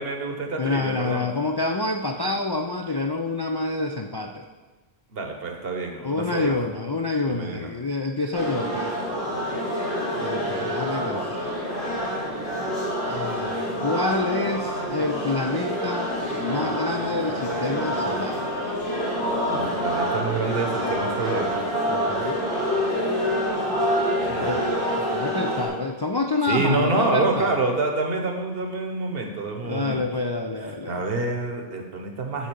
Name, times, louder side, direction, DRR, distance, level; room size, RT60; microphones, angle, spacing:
voice 1, 0.0-1.3 5.1-6.5 7.2-7.7 9.3-9.6 19.5-21.6 24.2-24.7 26.5-30.0 30.9-32.5, right 3 dB, 65° right, 3 dB, 1.2 m, -27 dB
voice 2, 0.6-4.5 6.0-8.9 10.2-11.5 13.1-16.1 16.4-18.5 21.9-22.4 24.3-24.7 25.0-27.6 29.6-31.0, left 3 dB, 40° left, 3 dB, 0.3 m, -27 dB
sound 1, 8.3-25.7, equal, 75° left, 3.0 m, -27 dB
9.4 x 3.8 x 6.9 m, 1.3 s
omnidirectional pair, 1.1 m